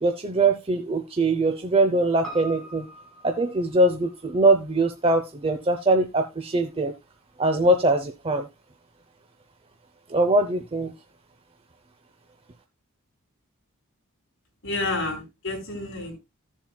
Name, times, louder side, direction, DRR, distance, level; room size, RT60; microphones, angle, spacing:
voice 1, 0.0-2.9 3.2-6.9 7.4-8.5 10.1-10.9, right 2 dB, 25° right, 5 dB, 0.7 m, -22 dB
Piano, 2.2-6.7 7.0-7.1, right 1 dB, 5° left, 3.8 m, -45 dB
voice 2, 14.6-16.2, left 2 dB, 65° left, 1 dB, 3.9 m, -29 dB
15.0 x 7.3 x 2.3 m, 0.22 s
head